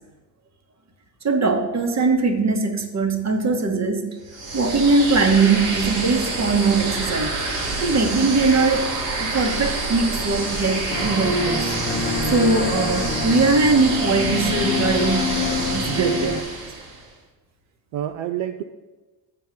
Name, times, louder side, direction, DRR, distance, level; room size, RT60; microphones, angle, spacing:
voice 1, 1.2-4.1 4.5-7.4 7.8-11.7 12.3-16.3, right 3 dB, 35° right, 5 dB, 1.3 m, -21 dB
sound 1, 4.3-17.0, right 3 dB, 80° right, 1.9 m, -27 dB
sound 2, 10.9-16.4, left 4 dB, 20° left, 1.0 m, -27 dB
voice 2, 15.9-16.4 17.9-18.6, right 12 dB, 65° right, 7 dB, 0.6 m, -27 dB
7.7 x 4.6 x 7.1 m, 1.2 s
hypercardioid pair, 65°, 50 cm